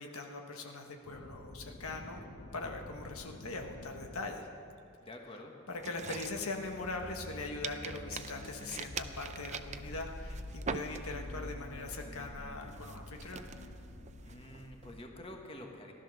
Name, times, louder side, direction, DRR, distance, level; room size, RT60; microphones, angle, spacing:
voice 1, 0.0-2.2 2.5-4.5 5.7-13.5, left 3 dB, 75° left, 3 dB, 1.3 m, -41 dB
sound 1, 1.0-4.7 5.7-15.4, left 1 dB, 45° left, 1.2 m, -48 dB
voice 2, 5.0-5.6 14.2-15.9, left 1 dB, 25° left, 2 dB, 1.4 m, -48 dB
sound 2, 5.8-7.3 7.6-11.4 11.8-12.1 12.6-14.9, right 6 dB, 35° right, 0.5 m, -43 dB
15.5 x 12.0 x 6.3 m, 2.5 s
head